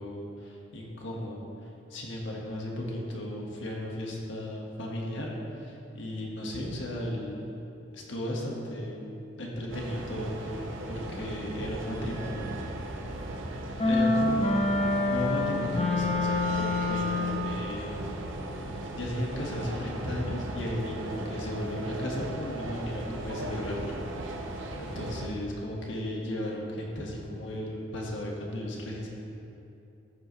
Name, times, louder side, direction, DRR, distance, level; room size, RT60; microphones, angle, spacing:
voice 1, 0.0-1.5 1.9-7.5 7.9-12.5 13.8-14.7 15.0-18.2 18.9-23.9 24.8-29.1, left 1 dB, 75° left, -2 dB, 1.6 m, -35 dB
sound 1, 9.7-25.3, right 1 dB, 85° right, 0.9 m, -37 dB
sound 2, 13.8-17.6, left 2 dB, 30° left, 0.9 m, -26 dB
14.0 x 7.8 x 3.2 m, 2.8 s
head